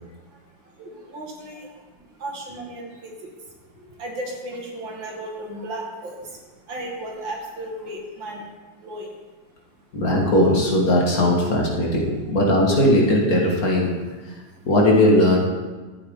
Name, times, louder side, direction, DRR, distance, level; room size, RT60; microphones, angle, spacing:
voice 1, 0.0-10.0 14.3-14.7, right 1 dB, 75° right, -1 dB, 2.5 m, -36 dB
voice 2, 9.9-13.9 14.2-14.4 14.7-15.4, left 1 dB, 50° left, -2 dB, 2.1 m, -18 dB
13.5 x 8.3 x 3.7 m, 1.3 s
omnidirectional pair, 2.1 m